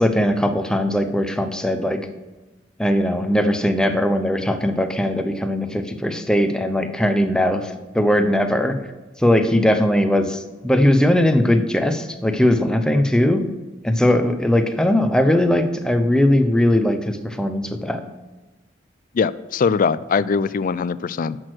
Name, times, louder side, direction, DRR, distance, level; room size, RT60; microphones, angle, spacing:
voice 1, 0.0-2.0 2.8-8.7 9.2-13.4 13.8-18.0, left 1 dB, 5° left, 6 dB, 0.7 m, -19 dB
voice 2, 19.1-21.4, left 5 dB, 45° left, 17 dB, 0.4 m, -21 dB
10.5 x 6.3 x 6.2 m, 1.2 s
head